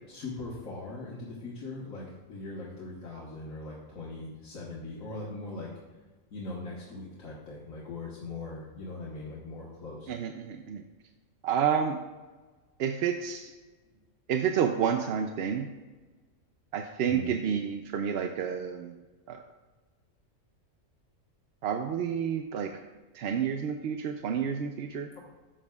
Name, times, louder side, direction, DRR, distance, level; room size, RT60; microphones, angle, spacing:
voice 1, 0.1-5.7 6.3-10.1 17.0-17.3, left 2 dB, 80° left, -5 dB, 1.7 m, -40 dB
voice 2, 10.1-10.8 11.4-12.0 12.8-13.5 14.3-15.7 16.7-18.9 19.3-19.4 21.6-22.7 23.1-25.1, right 7 dB, 65° right, 5 dB, 0.7 m, -29 dB
12.0 x 7.4 x 2.3 m, 1.3 s
omnidirectional pair, 1.4 m